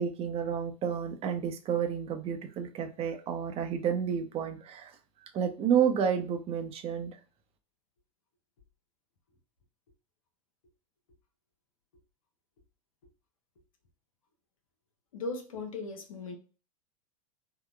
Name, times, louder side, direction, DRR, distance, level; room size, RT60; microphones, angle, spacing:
voice 1, 0.0-4.9 5.2-7.2, right 8 dB, 35° right, 0.7 m, -30 dB
voice 2, 15.1-16.4, left 3 dB, 80° left, 0.8 m, -37 dB
3.7 x 2.1 x 2.3 m
hypercardioid pair, 90°, 17 cm